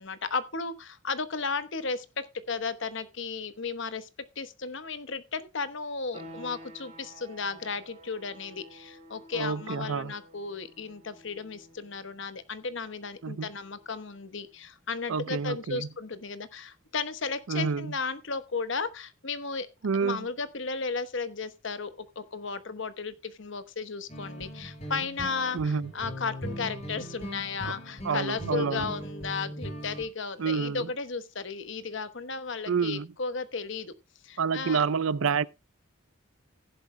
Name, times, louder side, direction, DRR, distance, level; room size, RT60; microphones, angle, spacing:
voice 1, 0.0-4.1 4.4-19.7 19.9-33.9 34.2-34.8, left 4 dB, 60° left, 1.0 m, -34 dB
sound 1, 6.1-16.6, right 1 dB, 30° right, 5.8 m, -52 dB
voice 2, 9.3-10.1 13.2-13.5 15.1-15.9 17.5-17.9 19.8-20.3 25.5-25.9 27.6-27.7 28.0-28.9 30.4-30.9 32.7-33.1 34.4-35.4, right 5 dB, 70° right, 0.5 m, -28 dB
sound 2, 24.1-30.0, equal, 30° left, 6.0 m, -39 dB
15.5 x 11.0 x 2.2 m
head